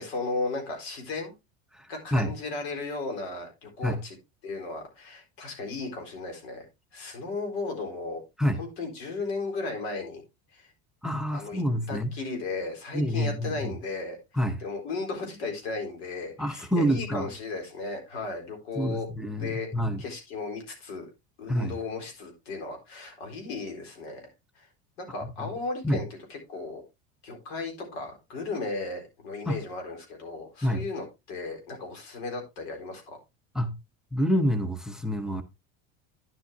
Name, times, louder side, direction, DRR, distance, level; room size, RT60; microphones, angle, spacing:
voice 1, 0.0-1.3 1.9-4.1 4.4-6.7 6.9-8.2 8.6-10.2 10.5-10.7 11.3-11.6 11.9-14.2 14.6-19.1 19.4-19.7 20.0-21.1 21.4-24.2 24.5-24.7 25.0-26.8 27.2-33.2, left 3 dB, 85° left, 4.2 m, -35 dB
voice 2, 1.7-2.3 3.8-4.0 8.4-8.6 11.0-12.1 12.9-13.7 14.3-14.6 16.4-17.3 18.7-20.0 21.5-21.8 25.4-25.5 25.8-26.0 29.5-29.6 30.6-30.8 33.5-33.7 34.1-35.4, equal, ahead, 0.8 m, -27 dB
10.5 x 7.9 x 2.7 m
supercardioid pair, 125°, 31 cm